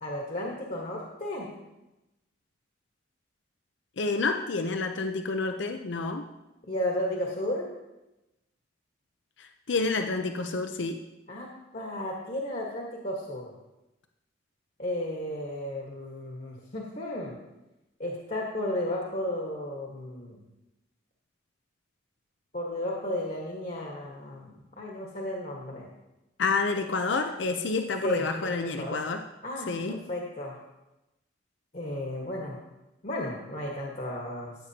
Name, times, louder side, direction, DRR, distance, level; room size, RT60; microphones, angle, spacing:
voice 1, 0.0-1.5 6.7-7.7 11.3-13.5 14.8-17.3 18.0-20.4 22.5-25.9 28.0-29.0 29.4-30.6 31.7-32.6 33.0-34.5, left 1 dB, 45° left, -2 dB, 1.4 m, -33 dB
voice 2, 4.0-6.3 9.4-11.0 26.4-29.2 29.7-30.0, left 3 dB, 80° left, 6 dB, 0.6 m, -29 dB
15.0 x 8.3 x 2.9 m, 0.98 s
head